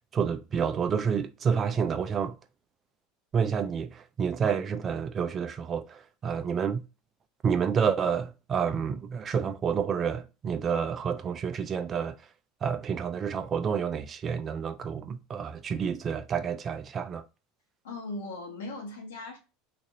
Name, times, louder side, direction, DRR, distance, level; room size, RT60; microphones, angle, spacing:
voice 1, 0.1-2.4 3.3-6.9 7.4-12.1 12.6-17.2, right 7 dB, 35° right, 0.5 m, -29 dB
voice 2, 17.8-19.4, left 2 dB, 85° left, 1.0 m, -38 dB
3.0 x 2.5 x 2.5 m
hypercardioid pair, 95°, 0 cm